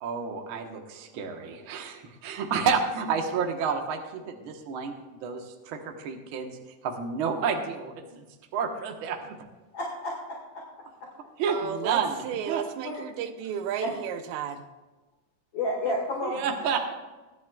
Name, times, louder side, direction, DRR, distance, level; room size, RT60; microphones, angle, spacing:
voice 1, 0.0-4.9 5.2-6.6 6.8-8.3 8.5-9.2 11.4-12.6 16.2-16.9, right 6 dB, 55° right, 3 dB, 1.5 m, -30 dB
voice 2, 9.7-10.6 12.8-13.0 13.8-13.9 15.5-16.6, left 1 dB, 40° left, -2 dB, 2.3 m, -31 dB
voice 3, 11.5-14.6, right 8 dB, 70° right, 7 dB, 2.0 m, -33 dB
22.5 x 10.5 x 2.4 m, 1.2 s
omnidirectional pair, 3.9 m